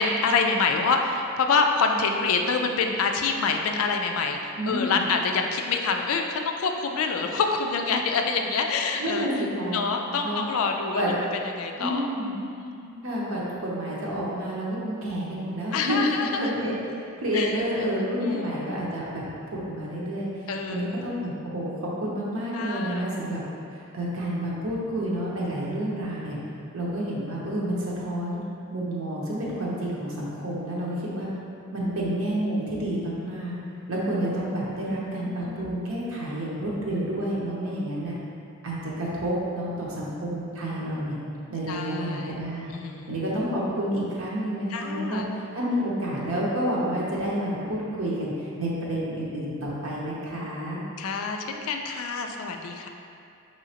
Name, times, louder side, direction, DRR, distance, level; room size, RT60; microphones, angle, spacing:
voice 1, 0.0-9.3 9.7-11.0 11.6-12.1 12.5-13.0 15.7-16.5 17.3-17.6 18.2-18.5 20.5-21.1 22.5-23.1 35.1-35.7 41.7-42.4 42.7-43.2 44.7-45.3 51.0-52.9, left 4 dB, 75° left, 3 dB, 0.4 m, -26 dB
voice 2, 4.6-5.0 9.0-9.8 10.2-10.4 10.9-11.1 11.8-12.3 13.0-16.0 16.3-16.8 17.2-19.2 19.5-23.4 23.7-26.4 26.7-28.4 28.7-31.3 31.7-33.6 33.9-38.2 38.6-41.2 41.5-42.7 43.1-45.2 45.5-50.8, right 1 dB, 75° right, -6 dB, 0.8 m, -29 dB
5.0 x 3.1 x 2.8 m, 2.5 s
head